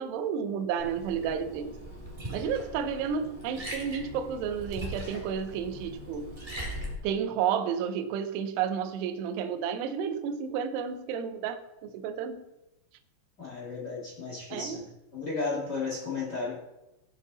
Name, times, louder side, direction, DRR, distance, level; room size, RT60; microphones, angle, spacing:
voice 1, 0.0-1.7 2.3-6.3 7.0-12.4 14.5-14.8, right 7 dB, 80° right, 8 dB, 2.5 m, -31 dB
Liquid, 0.8-6.9, equal, 50° right, 0.4 m, -40 dB
voice 2, 13.4-14.8 15.1-16.6, left 4 dB, 35° left, -5 dB, 1.7 m, -34 dB
16.5 x 6.0 x 4.1 m, 0.96 s
omnidirectional pair, 5.7 m